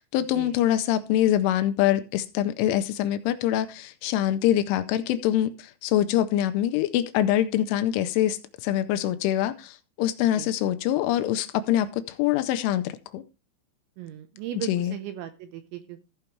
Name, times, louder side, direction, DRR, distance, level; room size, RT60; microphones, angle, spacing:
voice 1, 0.0-13.2 14.6-14.9, left 12 dB, 80° left, 3.0 m, -24 dB
voice 2, 14.0-16.0, right 12 dB, 80° right, 2.8 m, -37 dB
15.5 x 5.2 x 4.5 m
omnidirectional pair, 5.9 m